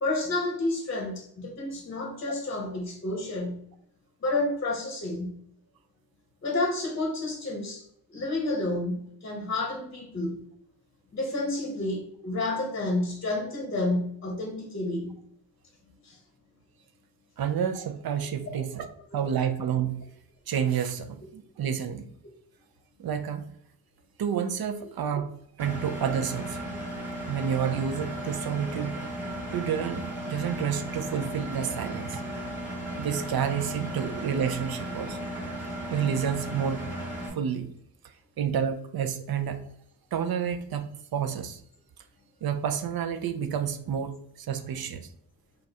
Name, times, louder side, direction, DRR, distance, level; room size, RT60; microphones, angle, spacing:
voice 1, 0.0-3.6 4.2-5.4 6.4-7.8 8.1-10.3 11.1-15.2 16.0-16.2 18.5-18.6, left 2 dB, 30° left, 2 dB, 0.7 m, -30 dB
voice 2, 17.4-18.9 19.1-20.0 20.5-22.1 23.0-23.5 24.2-25.3 25.6-26.7 27.3-29.0 29.5-32.2 33.0-35.3 35.9-36.8 37.3-37.7 38.4-39.6 40.1-41.6 42.4-45.1, right 8 dB, 60° right, 8 dB, 0.5 m, -29 dB
Engine, 25.6-37.3, right 1 dB, 5° right, 1.2 m, -35 dB
5.1 x 2.4 x 2.8 m, 0.68 s
wide cardioid pair, 135°, 41 cm